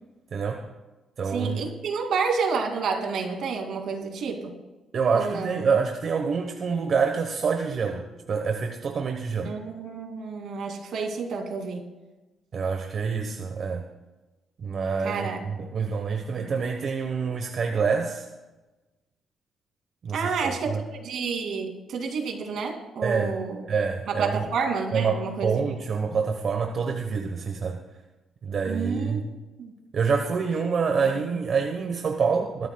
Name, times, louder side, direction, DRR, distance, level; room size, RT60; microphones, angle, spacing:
voice 1, 0.3-0.7 1.2-1.6 4.9-9.6 12.5-13.9 14.6-18.3 20.0-20.8 23.0-23.4 23.7-24.5 24.9-27.8 28.4-29.2 29.9-32.7, right 5 dB, 55° right, 4 dB, 1.0 m, -27 dB
voice 2, 1.3-4.5 5.1-5.7 9.4-11.9 15.0-15.4 16.4-16.5 20.1-23.6 24.1-25.5 28.7-29.2 29.6-29.7 31.1-31.4, right 5 dB, 75° right, 3 dB, 2.5 m, -30 dB
21.5 x 13.5 x 2.3 m, 1.1 s
cardioid pair, 110°, 0 cm